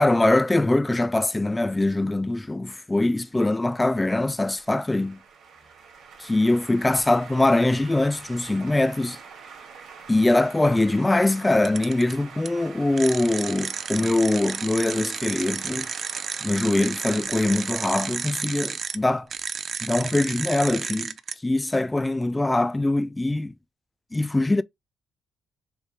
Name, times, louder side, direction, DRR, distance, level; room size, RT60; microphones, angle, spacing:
voice 1, 0.0-5.2 6.2-9.2 10.1-15.9 16.4-19.3 19.8-21.1 21.4-23.5 24.1-24.6, left 2 dB, 15° left, 0.3 m, -22 dB
sound 1, 3.1-19.7, right 6 dB, 70° right, 2.1 m, -46 dB
sound 2, 8.9-16.3, right 6 dB, 90° right, 1.9 m, -55 dB
sound 3, 11.6-12.1 12.5-12.6 13.0-19.0 19.3-21.3, right 6 dB, 50° right, 0.5 m, -32 dB
6.5 x 2.2 x 3.3 m
cardioid pair, 90°, 0 cm